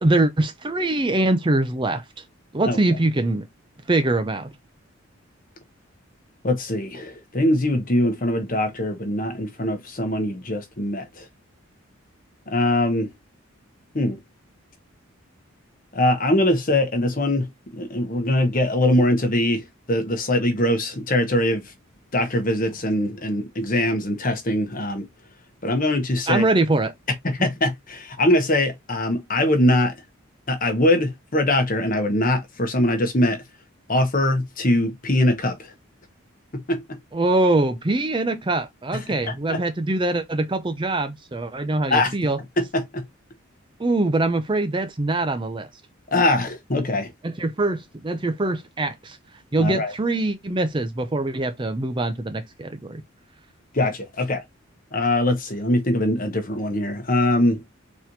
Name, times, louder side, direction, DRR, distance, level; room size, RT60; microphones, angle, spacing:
voice 1, 0.0-2.0 2.5-3.4 3.9-4.5 26.3-26.9 37.1-42.4 43.8-45.7 47.2-49.2 49.5-53.0, right 2 dB, 25° right, 0.5 m, -23 dB
voice 2, 6.4-11.3 12.5-13.1 13.9-14.2 15.9-21.7 22.1-25.1 25.6-26.5 27.2-29.9 30.5-33.4 33.9-35.7 36.5-37.0 39.1-39.6 41.9-42.2 42.6-43.0 46.1-47.1 49.6-49.9 53.7-54.4 54.9-57.6, left 1 dB, 40° left, 1.0 m, -22 dB
4.1 x 3.1 x 3.9 m
head